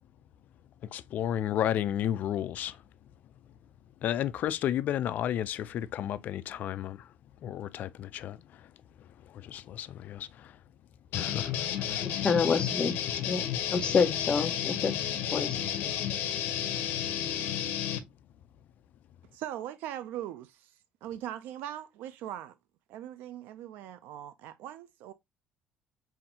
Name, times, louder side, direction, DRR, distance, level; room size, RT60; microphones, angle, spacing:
voice 1, 0.8-2.8 4.0-7.1 7.4-8.7 9.0-10.6 11.1-12.1, left 11 dB, 60° left, 0.4 m, -33 dB
sound 1, 11.1-18.0, left 10 dB, 85° left, 0.7 m, -32 dB
voice 2, 12.0-13.0 13.3-14.9 15.3-15.9, left 5 dB, 30° left, 0.7 m, -28 dB
voice 3, 19.3-22.6 22.9-25.1, right 11 dB, 85° right, 0.4 m, -40 dB
5.6 x 2.6 x 2.7 m
cardioid pair, 135°, 3 cm